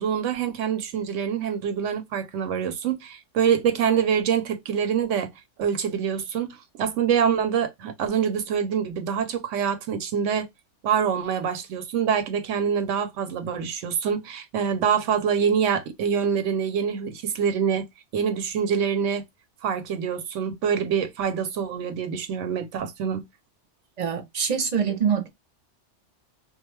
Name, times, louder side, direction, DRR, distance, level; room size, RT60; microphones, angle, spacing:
voice 1, 0.0-5.3 5.6-10.5 10.8-17.9 18.1-19.2 19.6-23.3, right 7 dB, 85° right, 1.0 m, -25 dB
voice 2, 24.0-25.3, right 7 dB, 45° right, 0.6 m, -24 dB
2.5 x 2.3 x 3.0 m
omnidirectional pair, 1.3 m